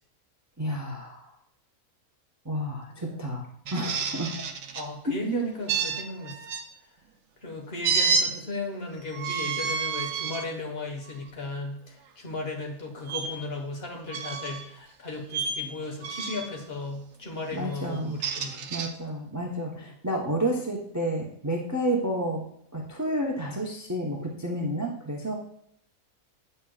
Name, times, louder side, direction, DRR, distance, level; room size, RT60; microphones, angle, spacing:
voice 1, 0.6-1.3 2.4-4.3 5.0-5.5 17.5-18.2 18.7-22.4 22.7-25.3, right 1 dB, 15° right, 0 dB, 0.6 m, -30 dB
voice 2, 2.9-3.4 4.7-6.5 7.4-18.7 19.7-19.9, left 2 dB, 45° left, 1 dB, 1.4 m, -36 dB
sound 1, 3.7-4.9 5.7-6.6 7.8-8.3 9.1-10.5 11.1-11.3 13.1-13.3 14.1-14.7 15.3-15.6 16.0-16.5 18.0-18.9, right 5 dB, 70° right, 1.0 m, -29 dB
8.5 x 6.5 x 2.3 m, 0.72 s
omnidirectional pair, 1.5 m